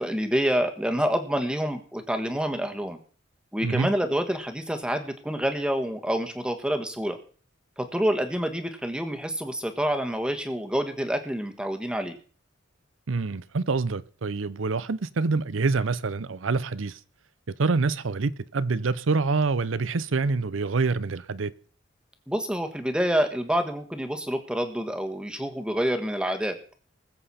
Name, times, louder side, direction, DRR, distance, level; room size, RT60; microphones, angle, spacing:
voice 1, 0.0-3.0 3.5-7.2 7.8-12.2 22.3-26.6, equal, 5° right, 1.4 m, -27 dB
voice 2, 13.1-17.0 17.6-21.5, right 4 dB, 85° right, 0.7 m, -26 dB
20.5 x 7.8 x 4.2 m
head